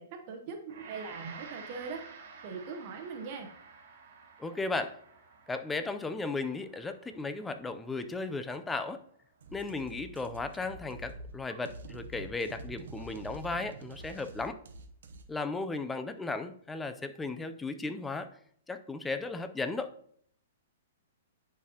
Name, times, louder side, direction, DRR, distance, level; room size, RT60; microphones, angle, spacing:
voice 1, 0.0-2.1 2.4-3.5, right 5 dB, 40° right, 4 dB, 0.9 m, -41 dB
Gong, 0.7-9.9, right 5 dB, 55° right, 1.6 m, -52 dB
voice 2, 4.4-5.0 5.5-9.0 9.5-14.6 15.3-18.3 18.7-19.9, left 3 dB, 10° left, 9 dB, 0.4 m, -35 dB
sound 1, 9.4-15.2, right 2 dB, 80° right, 0.7 m, -46 dB
10.0 x 4.1 x 2.8 m, 0.64 s
hypercardioid pair, 155°, 0 cm